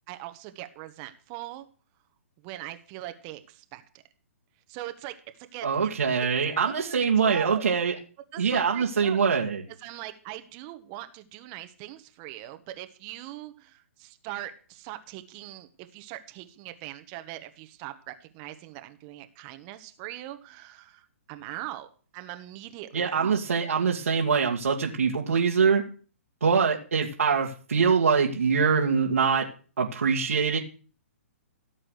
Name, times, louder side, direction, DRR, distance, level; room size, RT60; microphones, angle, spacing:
voice 1, 0.1-1.7 2.4-4.0 4.7-5.1 5.5-5.7 6.6-7.7 8.3-9.2 9.8-21.9 22.1-23.4, right 15 dB, 35° right, 8 dB, 1.3 m, -41 dB
voice 2, 5.6-7.9 8.4-9.6 22.9-25.8 26.4-29.5 29.8-30.6, right 6 dB, 80° right, -2 dB, 2.1 m, -24 dB
16.5 x 7.7 x 6.5 m, 0.40 s
hypercardioid pair, 135°, 8 cm